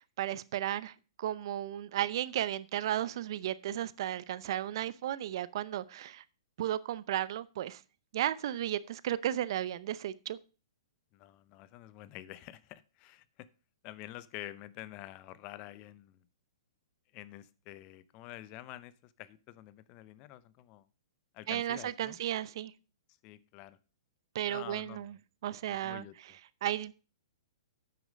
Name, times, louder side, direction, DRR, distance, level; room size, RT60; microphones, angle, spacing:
voice 1, 0.0-6.2 6.6-7.8 8.1-10.4 21.5-22.7 24.3-25.2 25.4-26.0 26.6-26.9, right 12 dB, 55° right, 0.6 m, -34 dB
voice 2, 11.1-13.5 13.8-16.2 17.1-20.9 21.3-22.2 23.2-23.8 24.5-25.2 25.7-26.4, left 15 dB, 35° left, 0.6 m, -48 dB
9.2 x 6.2 x 5.2 m
hypercardioid pair, 140°, 3 cm